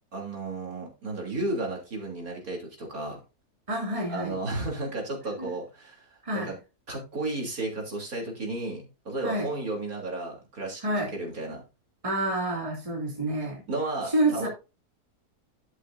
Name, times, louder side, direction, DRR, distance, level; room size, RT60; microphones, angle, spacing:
voice 1, 0.1-3.2 4.1-6.5 6.9-11.6 13.7-14.5, right 2 dB, 70° right, 0 dB, 3.6 m, -33 dB
voice 2, 3.7-4.4 5.4-5.5 6.2-6.5 9.2-9.5 10.8-11.1 12.0-13.6 14.0-14.5, right 1 dB, 20° right, -1 dB, 2.5 m, -28 dB
11.0 x 8.1 x 2.6 m, 0.29 s
omnidirectional pair, 1.6 m